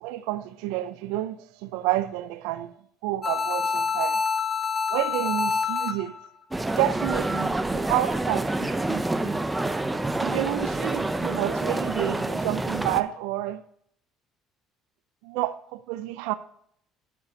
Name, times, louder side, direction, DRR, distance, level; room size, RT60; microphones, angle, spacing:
voice 1, 0.0-2.7 3.0-4.2 4.9-6.2 6.8-9.4 10.2-13.6 15.2-16.3, right 15 dB, 85° right, 0.5 m, -29 dB
sound 1, 3.2-6.3, left 5 dB, 25° left, 1.2 m, -27 dB
sound 2, 6.5-13.0, right 2 dB, 10° right, 0.7 m, -27 dB
10.5 x 6.6 x 2.8 m
supercardioid pair, 90°, 0 cm